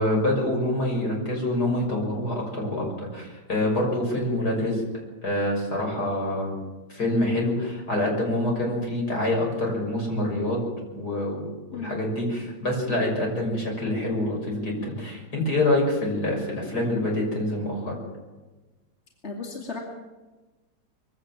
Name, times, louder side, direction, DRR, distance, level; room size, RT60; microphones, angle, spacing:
voice 1, 0.0-4.8 5.2-6.5 6.9-10.6 10.9-11.4 11.7-18.0, left 1 dB, 60° left, 0 dB, 6.8 m, -26 dB
voice 2, 19.2-19.8, left 4 dB, 35° left, -1 dB, 2.8 m, -35 dB
22.5 x 16.5 x 7.4 m, 1.2 s
omnidirectional pair, 1.9 m